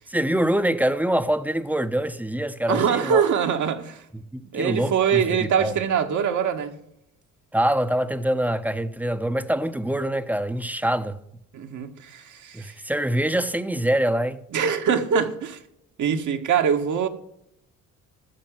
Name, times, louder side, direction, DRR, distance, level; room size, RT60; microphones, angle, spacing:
voice 1, 0.1-3.2 4.1-5.8 7.5-11.2 12.5-14.4, right 1 dB, 5° right, 0.9 m, -25 dB
voice 2, 2.7-4.0 4.5-6.7 11.5-12.7 14.5-15.6 16.0-17.1, right 7 dB, 60° right, 1.8 m, -23 dB
13.5 x 6.9 x 7.6 m
cardioid pair, 85°, 33 cm